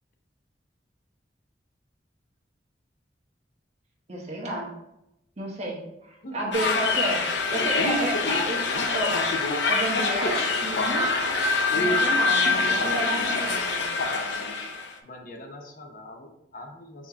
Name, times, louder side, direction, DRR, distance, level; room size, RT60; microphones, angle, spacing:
voice 1, 4.1-4.7 5.4-5.8 6.1-9.2 9.7-11.1 11.7-13.8, right 1 dB, 40° right, -3 dB, 1.1 m, -31 dB
voice 2, 6.2-6.5 7.6-7.7 8.7-8.8 11.6-11.8 12.5-13.1 15.0-17.1, left 1 dB, 50° left, 2 dB, 0.8 m, -42 dB
sound 1, 6.5-14.9, left 3 dB, 85° left, 0.6 m, -25 dB
4.3 x 3.1 x 3.5 m, 0.85 s
head